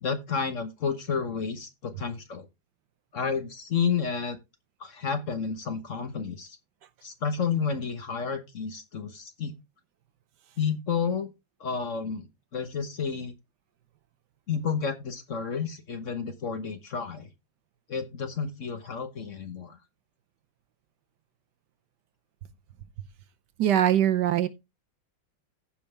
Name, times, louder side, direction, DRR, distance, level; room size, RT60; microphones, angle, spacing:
voice 1, 0.0-2.5 3.1-4.4 4.8-6.6 7.0-9.5 10.6-11.3 11.6-13.3 14.5-17.3 17.9-19.8, left 6 dB, 45° left, 1.2 m, -31 dB
voice 2, 23.6-24.5, right 11 dB, 70° right, 1.3 m, -22 dB
15.0 x 5.5 x 3.4 m
omnidirectional pair, 2.0 m